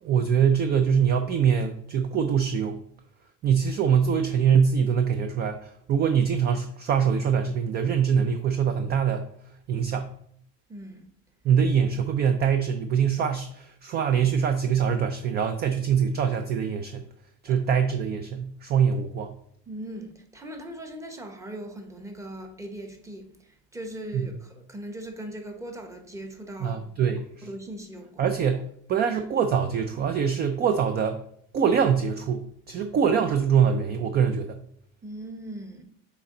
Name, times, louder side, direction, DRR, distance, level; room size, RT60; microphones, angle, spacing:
voice 1, 0.0-2.8 3.4-9.3 9.7-10.1 11.4-17.0 17.4-19.4 24.1-24.3 26.6-27.5 28.2-31.2 31.5-34.6, right 7 dB, 30° right, 0.4 m, -24 dB
voice 2, 10.7-11.1 17.5-17.6 19.7-26.8 27.4-28.2 32.8-32.9 35.0-35.8, right 1 dB, 10° right, 0.9 m, -39 dB
6.8 x 4.3 x 3.7 m
cardioid pair, 140°, 36 cm